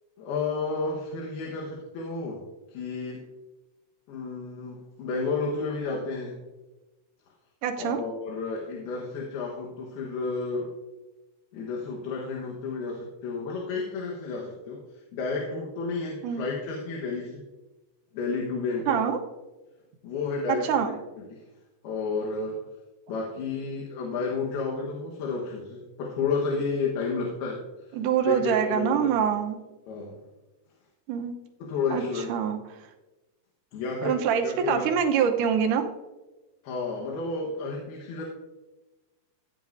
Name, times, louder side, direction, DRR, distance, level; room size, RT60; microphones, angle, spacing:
voice 1, 0.2-2.4 2.7-3.2 4.1-6.4 7.8-10.7 11.5-14.8 15.1-17.4 18.1-19.1 20.0-21.4 21.8-22.6 23.1-27.6 28.2-29.2 29.9-30.2 31.6-32.3 33.7-34.9 36.6-38.3, left 4 dB, 85° left, -2 dB, 3.2 m, -31 dB
voice 2, 7.6-8.0 16.2-16.5 18.9-19.2 20.5-20.9 27.9-29.6 31.1-31.3 31.9-32.0 32.3-32.6 34.0-35.9, right 8 dB, 70° right, 5 dB, 2.1 m, -25 dB
16.5 x 9.3 x 2.6 m, 1.1 s
omnidirectional pair, 4.3 m